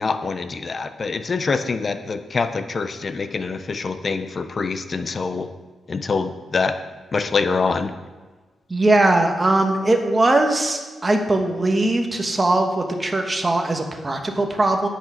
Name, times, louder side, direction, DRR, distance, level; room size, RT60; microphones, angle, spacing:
voice 1, 0.0-5.5 5.9-6.8 7.1-7.9, left 4 dB, 40° left, 9 dB, 0.8 m, -25 dB
voice 2, 8.7-14.9, right 2 dB, 25° right, 4 dB, 1.4 m, -20 dB
9.0 x 8.4 x 6.3 m, 1.3 s
cardioid pair, 100°, 0 cm